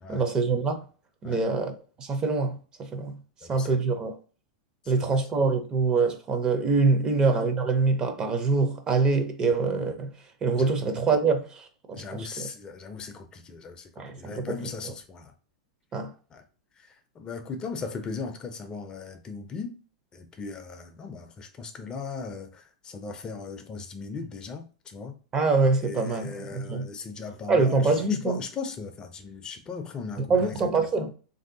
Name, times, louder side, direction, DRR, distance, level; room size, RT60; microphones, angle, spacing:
voice 1, 0.1-0.8 1.2-3.1 3.5-4.2 4.9-10.1 10.4-12.5 14.0-14.9 15.9-16.1 25.3-26.9 27.5-28.4 30.3-31.1, right 4 dB, 25° right, 0.6 m, -25 dB
voice 2, 3.4-3.8 4.9-5.2 7.1-7.2 10.5-10.7 11.9-13.9 14.2-15.3 16.3-16.4 16.8-19.8 20.1-25.2 25.8-28.0 28.2-30.6, left 4 dB, 25° left, 0.4 m, -38 dB
3.2 x 2.6 x 2.6 m
hypercardioid pair, 125°, 3 cm